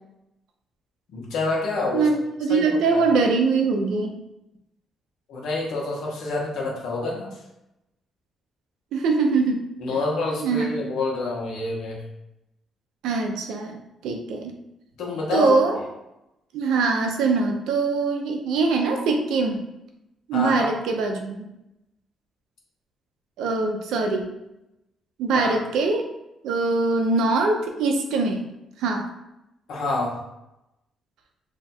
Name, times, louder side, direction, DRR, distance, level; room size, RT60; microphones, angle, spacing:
voice 1, 1.1-2.1 2.5-3.0 5.3-7.3 9.8-12.0 15.0-15.5 20.3-20.7 25.3-25.5 29.7-30.2, left 2 dB, 80° left, -2 dB, 1.0 m, -27 dB
voice 2, 1.9-4.1 8.9-9.6 9.9-10.0 10.4-10.7 13.0-14.5 15.3-15.8 16.5-19.6 20.3-21.4 23.4-24.2 25.2-26.1 26.4-28.5 28.8-29.1, right 4 dB, 85° right, 3 dB, 0.5 m, -23 dB
2.8 x 2.3 x 4.2 m, 0.89 s
cardioid pair, 90°, 0 cm